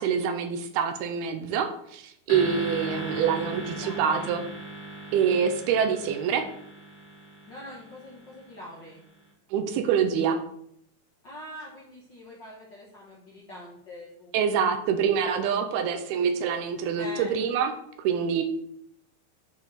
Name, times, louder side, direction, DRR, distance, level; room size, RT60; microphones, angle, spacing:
voice 1, 0.0-4.4 5.1-6.5 9.5-10.4 14.3-18.4, right 7 dB, 85° right, 7 dB, 2.7 m, -26 dB
sound 1, 2.3-8.7, right 1 dB, 35° left, 3.3 m, -38 dB
voice 2, 2.9-4.3 7.5-9.0 11.2-14.3 17.0-17.4, left 1 dB, 85° left, -4 dB, 1.0 m, -43 dB
9.0 x 5.3 x 4.2 m, 0.70 s
omnidirectional pair, 4.4 m